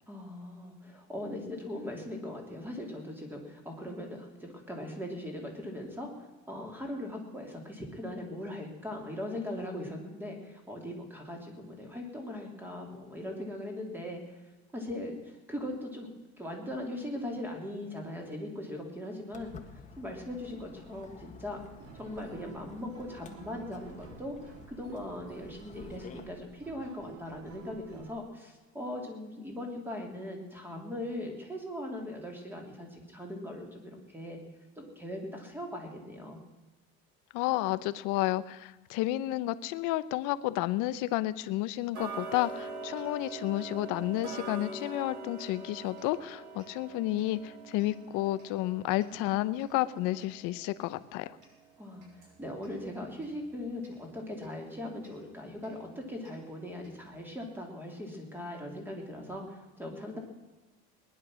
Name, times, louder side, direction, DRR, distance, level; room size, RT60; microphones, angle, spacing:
voice 1, 0.1-14.4 14.7-16.1 16.4-19.5 20.0-21.6 21.9-34.4 34.8-36.4 51.8-60.2, left 1 dB, 5° right, 1 dB, 3.2 m, -40 dB
Walk footsteps, 19.3-26.3, left 5 dB, 20° left, 1.6 m, -52 dB
sound 1, 21.8-28.1, right 7 dB, 45° right, 1.8 m, -52 dB
voice 2, 37.3-51.4, left 16 dB, 70° left, 14 dB, 0.9 m, -31 dB
Tick-tock, 41.9-52.8 53.2-53.3 53.8-53.9 54.4-54.5 55.0-55.1 55.6-55.7 56.3-56.4 56.8-56.9, right 3 dB, 65° right, 6.3 m, -44 dB
19.5 x 11.0 x 6.3 m, 1.2 s
cardioid pair, 150°, 33 cm